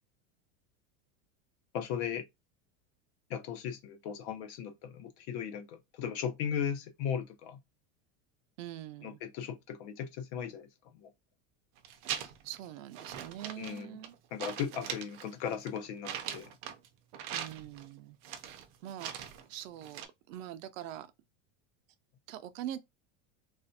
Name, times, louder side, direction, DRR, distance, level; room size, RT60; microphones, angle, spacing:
voice 1, 1.7-2.3 3.3-7.6 9.0-11.1 13.6-14.0 14.3-16.5, left 8 dB, 60° left, 0.8 m, -37 dB
voice 2, 8.6-9.2 12.1-14.1 17.3-18.2 18.4-21.1 22.3-22.8, right 12 dB, 90° right, 0.6 m, -44 dB
sound 1, 11.8-12.6 12.9-14.1 14.4-16.9 17.1-17.9 18.2-19.5 19.8-20.1, right 9 dB, 45° right, 0.5 m, -41 dB
3.3 x 2.5 x 2.6 m
supercardioid pair, 165°, 38 cm